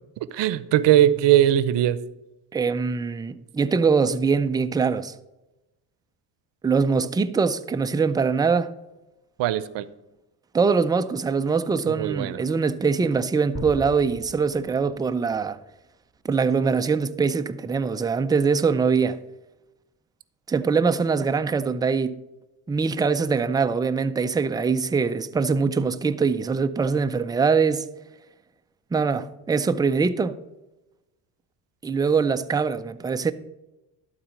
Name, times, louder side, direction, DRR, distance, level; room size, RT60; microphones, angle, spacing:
voice 1, 0.3-2.0 9.4-9.8 11.9-12.4, right 12 dB, 65° right, 0.7 m, -20 dB
voice 2, 2.5-5.1 6.6-8.7 10.5-15.6 16.2-19.2 20.5-22.2 22.7-27.9 28.9-30.4 31.8-33.3, right 5 dB, 10° right, 0.3 m, -23 dB
sound 1, 13.5-15.5, right 1 dB, 25° left, 2.1 m, -39 dB
12.0 x 4.1 x 6.3 m
supercardioid pair, 85°, 46 cm